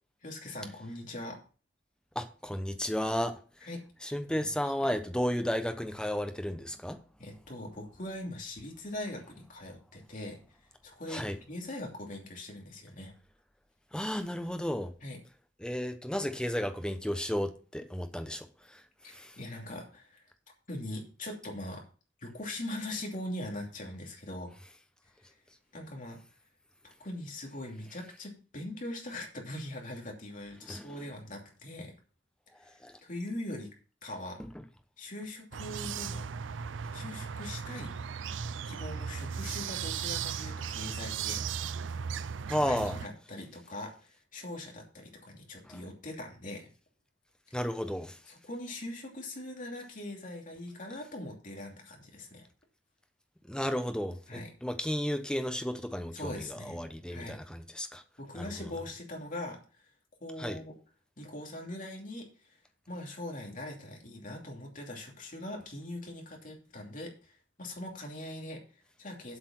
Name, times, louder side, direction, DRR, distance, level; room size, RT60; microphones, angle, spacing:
voice 1, 0.2-1.4 3.6-3.8 4.2-4.7 7.2-10.4 10.8-13.1 15.0-15.2 19.0-20.2 20.7-21.8 22.2-24.5 25.7-26.2 26.8-31.9 33.0-33.7 34.0-34.4 35.0-36.3 36.9-37.9 38.6-41.4 42.5-46.7 48.3-52.5 54.3-54.5 56.1-56.8 57.1-57.4 58.2-59.6 60.2-60.7 61.2-62.6 62.9-69.4, left 1 dB, 45° left, 2.8 m, -41 dB
voice 2, 2.1-3.4 4.0-7.0 11.1-11.4 13.9-14.9 15.6-19.4 30.6-31.0 32.6-33.0 34.4-34.5 42.5-43.0 45.6-45.8 47.5-48.2 53.4-58.0 58.3-58.5 60.4-60.6, equal, 5° left, 0.9 m, -33 dB
sound 1, 35.5-43.1, right 7 dB, 75° right, 0.5 m, -37 dB
7.9 x 6.5 x 6.0 m
head